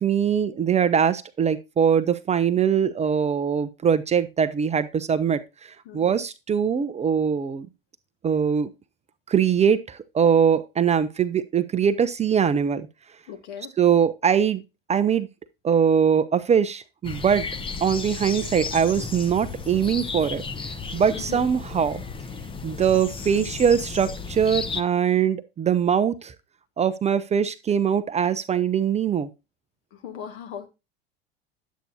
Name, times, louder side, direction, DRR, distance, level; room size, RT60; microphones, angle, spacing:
voice 1, 0.0-7.7 8.2-8.7 9.3-12.9 13.8-14.6 14.9-15.3 15.6-17.4 17.8-22.0 22.6-26.3 26.8-29.3, right 7 dB, 20° right, 0.6 m, -22 dB
voice 2, 5.9-6.2 13.3-13.7 21.1-21.5 23.3-23.5 29.9-30.7, left 8 dB, 55° left, 2.0 m, -38 dB
sound 1, 17.0-24.8, left 5 dB, 15° left, 0.8 m, -34 dB
10.0 x 8.3 x 2.7 m
hypercardioid pair, 80°, 30 cm